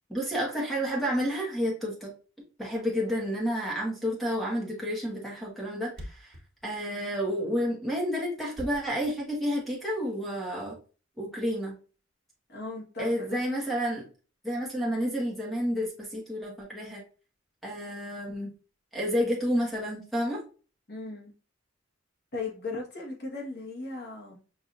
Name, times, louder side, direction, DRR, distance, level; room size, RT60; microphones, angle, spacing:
voice 1, 0.1-2.1 2.6-6.3 6.6-10.7 11.2-11.7 13.0-14.1 14.4-17.0 17.6-18.5 18.9-20.4, equal, ahead, -3 dB, 1.2 m, -30 dB
Thump thud, 5.9-10.0, left 1 dB, 60° right, 1.2 m, -45 dB
voice 2, 12.5-13.4 20.9-21.3 22.3-24.4, left 3 dB, 55° left, -2 dB, 1.3 m, -37 dB
5.6 x 2.7 x 2.5 m, 0.36 s
head